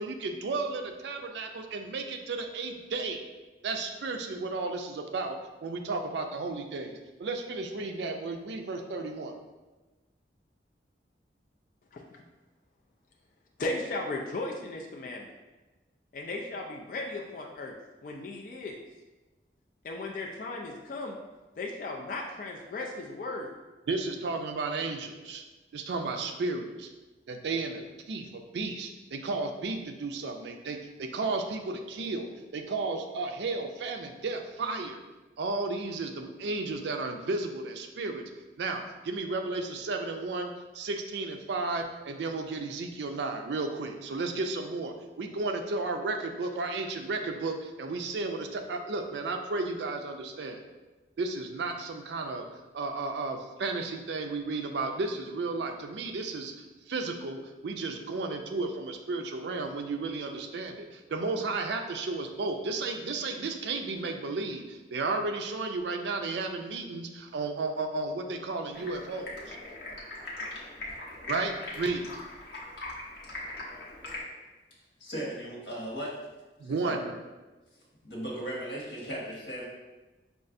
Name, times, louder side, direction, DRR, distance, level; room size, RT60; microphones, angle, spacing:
voice 1, 0.0-3.2 3.6-5.4 5.6-6.9 7.2-9.3 23.9-25.4 25.7-26.9 27.3-35.0 35.4-38.2 38.6-50.6 51.2-52.5 52.7-56.5 56.9-69.6 71.3-72.1 76.6-77.1, right 3 dB, 80° right, 5 dB, 0.4 m, -33 dB
voice 2, 13.6-15.3 16.1-17.8 18.0-18.8 19.8-21.2 21.6-23.5, left 2 dB, 50° left, 0 dB, 0.3 m, -36 dB
Stream, 68.7-74.2, left 2 dB, 70° left, 0.8 m, -40 dB
voice 3, 75.0-76.1 76.6-77.1 78.0-79.7, right 1 dB, 85° left, -4 dB, 1.2 m, -37 dB
5.2 x 2.4 x 2.5 m, 1.2 s
head